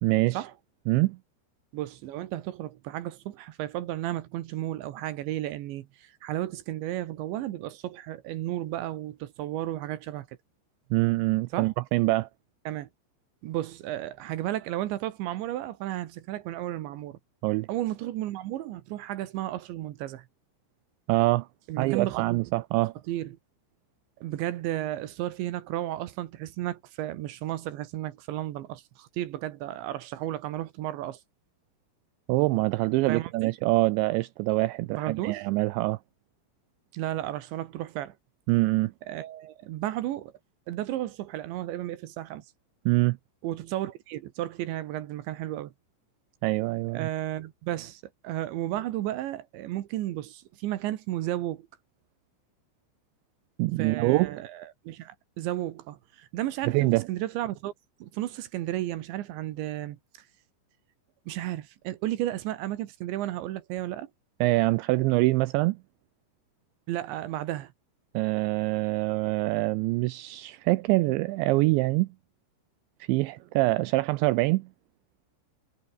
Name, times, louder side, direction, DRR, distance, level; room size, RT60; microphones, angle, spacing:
voice 1, 0.0-0.4 0.9-1.2 10.9-12.3 17.4-17.7 21.1-21.5 21.8-22.9 32.3-36.0 38.5-38.9 42.9-43.2 46.4-47.1 53.6-54.4 56.7-57.1 64.4-65.8 68.1-72.1 73.1-74.7, right 21 dB, 90° right, 2.6 m, -25 dB
voice 2, 1.7-10.3 11.5-11.7 12.7-12.9 13.4-17.2 17.7-20.3 21.7-22.2 23.1-23.4 24.2-31.2 33.1-33.5 34.9-35.5 36.9-38.1 39.1-40.3 40.7-42.5 43.4-45.7 46.9-51.7 53.8-57.7 58.0-60.0 61.3-64.1 66.9-67.7, right 14 dB, 70° right, 3.3 m, -33 dB
omnidirectional pair, 5.8 m